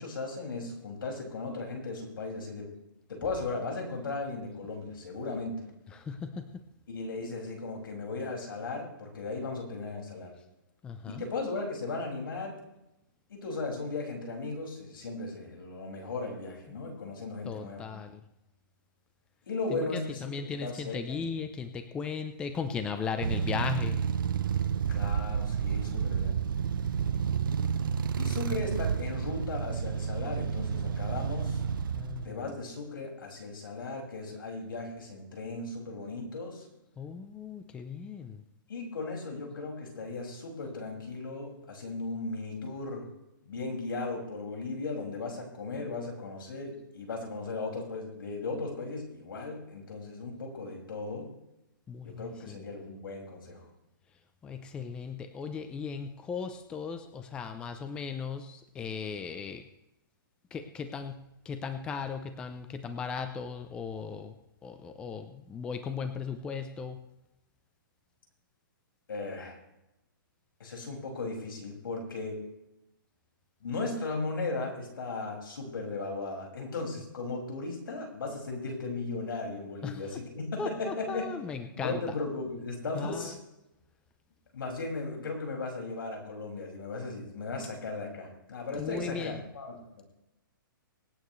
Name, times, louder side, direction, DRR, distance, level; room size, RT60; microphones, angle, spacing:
voice 1, 0.0-2.7 3.1-5.6 6.9-10.3 11.1-12.6 13.3-17.8 19.5-20.2 20.4-21.2 24.9-26.4 28.2-31.6 32.2-36.7 38.7-43.1 43.4-51.3 52.0-53.6 69.1-69.6 70.6-72.4 73.6-81.3 81.6-83.3 84.5-90.0, left 3 dB, 75° left, 0 dB, 5.7 m, -36 dB
voice 2, 5.9-6.5 10.8-11.2 17.4-18.1 19.7-24.0 31.9-32.4 37.0-38.4 51.9-52.6 54.4-59.6 60.5-61.2 61.4-64.4 64.6-67.0 79.8-80.2 80.6-82.2 82.9-83.3 88.8-89.4, left 6 dB, 10° left, 8 dB, 0.6 m, -37 dB
sound 1, 23.2-32.3, right 7 dB, 70° right, 0.8 m, -30 dB
24.5 x 9.0 x 3.2 m, 0.89 s
hypercardioid pair, 165°, 11 cm